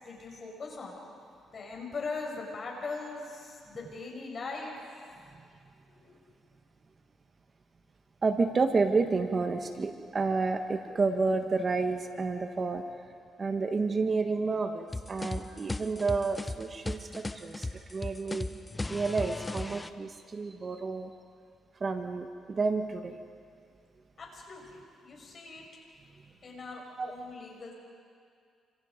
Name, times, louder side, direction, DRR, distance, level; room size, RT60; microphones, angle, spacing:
voice 1, 0.0-1.0 1.5-5.0 5.9-6.2 24.2-25.6 26.4-27.7, left 3 dB, 45° left, 0 dB, 6.9 m, -40 dB
voice 2, 8.2-12.8 13.4-18.5 18.9-21.1 21.8-23.1 27.0-27.1, right 4 dB, 35° right, 6 dB, 1.5 m, -30 dB
sound 1, 14.9-19.9, left 2 dB, 15° left, 0.9 m, -36 dB
28.0 x 26.5 x 5.3 m, 2.2 s
cardioid pair, 90°, 0 cm